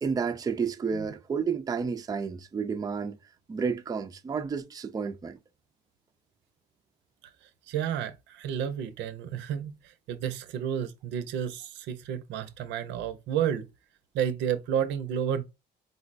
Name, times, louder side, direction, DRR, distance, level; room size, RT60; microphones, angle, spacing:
voice 1, 0.0-3.2 3.5-5.4, right 5 dB, 20° right, 0.4 m, -31 dB
voice 2, 7.7-9.8 10.1-13.7 14.1-15.4, right 9 dB, 75° right, 0.5 m, -31 dB
3.9 x 2.0 x 2.4 m
supercardioid pair, 70°, 18 cm